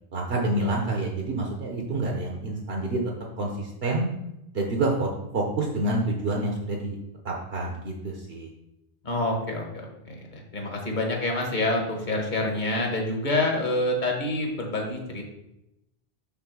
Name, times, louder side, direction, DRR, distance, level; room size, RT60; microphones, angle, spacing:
voice 1, 0.1-3.0 3.4-4.1 4.5-7.0 7.2-8.5, right 2 dB, 70° right, -1 dB, 1.2 m, -28 dB
voice 2, 9.0-15.2, left 2 dB, 50° left, 1 dB, 1.4 m, -27 dB
5.9 x 3.8 x 6.1 m, 0.86 s
omnidirectional pair, 1.1 m